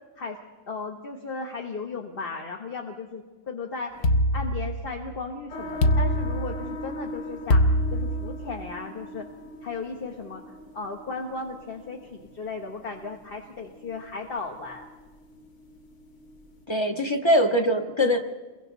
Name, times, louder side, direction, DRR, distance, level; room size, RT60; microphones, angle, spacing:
voice 1, 0.7-7.6 7.9-9.3 9.6-14.9, left 4 dB, 35° left, 2 dB, 1.4 m, -36 dB
sound 1, 4.0-5.1 5.8-6.9 7.5-8.6, left 1 dB, 50° left, 0.8 m, -23 dB
sound 2, 5.5-16.6, left 1 dB, 90° left, 2.9 m, -41 dB
voice 2, 16.7-18.2, equal, 15° left, 4 dB, 1.4 m, -22 dB
29.0 x 22.5 x 4.1 m, 1.3 s
omnidirectional pair, 2.0 m